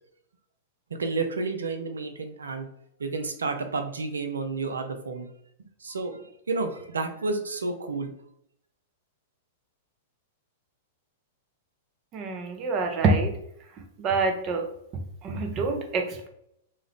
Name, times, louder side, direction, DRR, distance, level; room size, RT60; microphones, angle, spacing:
voice 1, 1.0-2.7 3.0-5.3 5.8-6.2 6.5-8.1, right 3 dB, 85° right, 6 dB, 0.5 m, -30 dB
voice 2, 12.1-13.4 14.0-14.7 15.2-16.3, right 3 dB, 35° right, 3 dB, 0.7 m, -26 dB
2.6 x 2.3 x 3.5 m, 0.72 s
hypercardioid pair, 105°, 0 cm